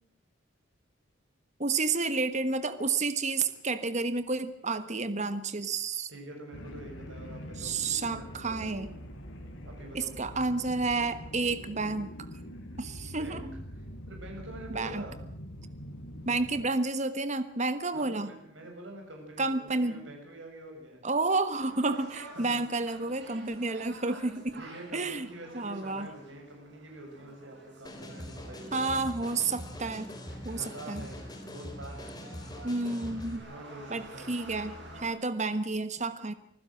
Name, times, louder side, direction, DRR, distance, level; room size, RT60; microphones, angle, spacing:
voice 1, 1.6-6.1 7.6-8.9 9.9-12.1 12.8-13.4 14.7-15.0 16.2-18.3 19.4-20.0 21.0-24.5 24.9-25.3 25.5-26.1 28.7-30.1 30.4-31.0 32.6-33.5 33.9-36.3, right 3 dB, 40° right, 12 dB, 1.3 m, -30 dB
voice 2, 6.1-8.5 9.6-10.2 13.0-15.2 17.9-21.0 22.3-22.6 24.6-28.9 30.5-31.2 31.5-32.5 33.4-34.4, right 1 dB, 85° right, 2 dB, 7.2 m, -46 dB
sound 1, 6.5-16.6, equal, 90° left, 4.2 m, -44 dB
sound 2, 21.5-35.1, right 1 dB, 65° right, 7.5 m, -51 dB
sound 3, 27.8-33.4, equal, 20° left, 3.9 m, -43 dB
25.5 x 15.5 x 7.8 m, 0.68 s
head